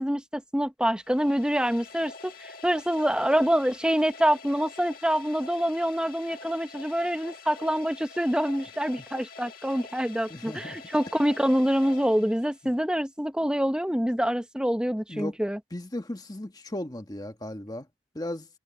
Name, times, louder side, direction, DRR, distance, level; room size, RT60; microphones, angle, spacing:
voice 1, 0.0-15.6, equal, 5° right, 0.9 m, -26 dB
sound 1, 0.9-12.9, left 4 dB, 50° left, 1.7 m, -46 dB
voice 2, 10.3-10.8 12.6-12.7 15.1-15.4 15.7-17.9 18.1-18.5, left 1 dB, 20° left, 1.4 m, -36 dB
head